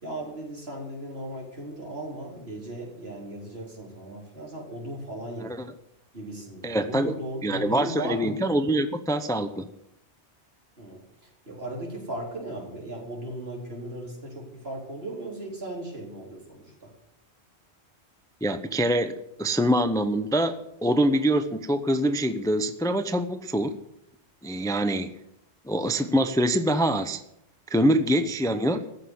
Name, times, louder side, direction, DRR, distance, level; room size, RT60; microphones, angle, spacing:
voice 1, 0.0-5.5 6.1-8.4 10.8-11.0 11.5-16.9 28.1-28.3, right 1 dB, 65° right, -1 dB, 4.1 m, -37 dB
voice 2, 6.6-7.1 7.4-9.7 18.4-23.7 24.4-25.1 25.7-27.2 27.7-28.8, right 1 dB, 5° left, 10 dB, 0.6 m, -24 dB
15.0 x 6.5 x 9.7 m, 0.80 s
omnidirectional pair, 1.1 m